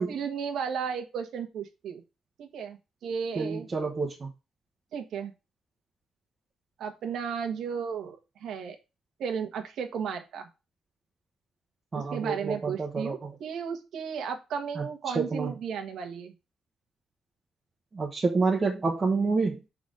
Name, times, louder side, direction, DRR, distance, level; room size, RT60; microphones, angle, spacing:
voice 1, 0.0-2.0 2.4-3.7 4.9-5.3 6.8-8.8 9.2-10.5 11.9-16.3, right 7 dB, 70° right, 4 dB, 1.4 m, -34 dB
voice 2, 3.4-4.3 11.9-13.1 15.2-15.5 17.9-19.6, right 4 dB, 25° right, -1 dB, 1.1 m, -28 dB
6.1 x 4.1 x 4.9 m, 0.27 s
cardioid pair, 165°, 0 cm